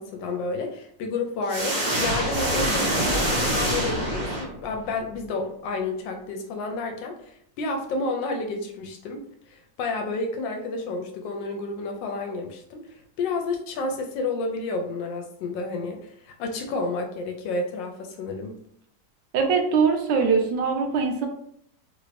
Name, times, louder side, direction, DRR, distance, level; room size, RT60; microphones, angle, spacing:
voice 1, 0.0-18.6, left 3 dB, 80° left, 3 dB, 1.2 m, -31 dB
sound 1, 1.5-4.9, right 1 dB, 35° right, 0.6 m, -25 dB
voice 2, 19.3-21.3, right 5 dB, 75° right, 3 dB, 1.2 m, -22 dB
3.2 x 2.5 x 3.2 m, 0.69 s
omnidirectional pair, 2.0 m